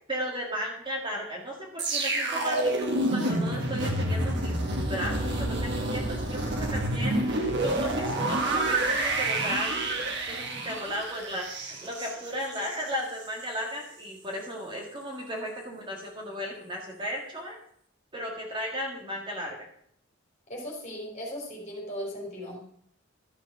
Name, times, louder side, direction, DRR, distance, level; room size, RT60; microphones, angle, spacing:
voice 1, 0.1-9.9 10.3-17.6 18.1-19.7, equal, 25° right, -1 dB, 1.9 m, -35 dB
sound 1, 1.8-12.9 13.2-13.4, right 1 dB, 55° right, 1.8 m, -28 dB
voice 2, 20.5-22.6, equal, 35° left, -1 dB, 3.5 m, -37 dB
12.0 x 6.1 x 6.2 m, 0.66 s
head